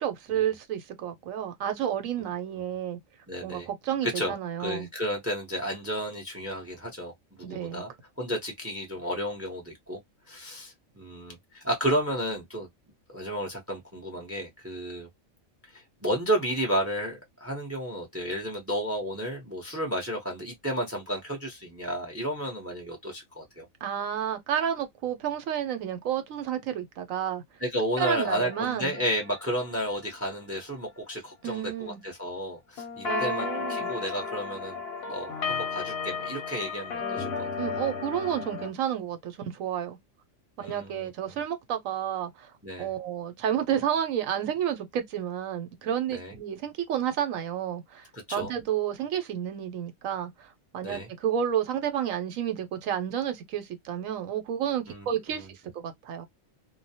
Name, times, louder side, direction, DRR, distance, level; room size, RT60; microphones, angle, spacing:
voice 1, 0.0-3.0 3.4-4.9 7.4-7.8 23.8-27.4 28.0-29.0 31.4-32.0 33.0-33.9 37.6-40.0 40.6-42.5 42.8-56.3, right 9 dB, 80° right, 1.1 m, -31 dB
voice 2, 3.3-3.7 4.0-7.9 8.2-10.0 10.3-12.7 13.1-15.1 15.7-23.7 27.6-34.8 35.1-37.5 40.6-41.3 42.6-42.9 46.1-46.3 48.1-48.5 50.8-51.1 54.9-55.5, equal, 15° right, 0.6 m, -32 dB
sound 1, 28.0-30.1 32.8-38.7, left 4 dB, 55° left, 0.8 m, -34 dB
2.3 x 2.1 x 2.7 m
omnidirectional pair, 1.4 m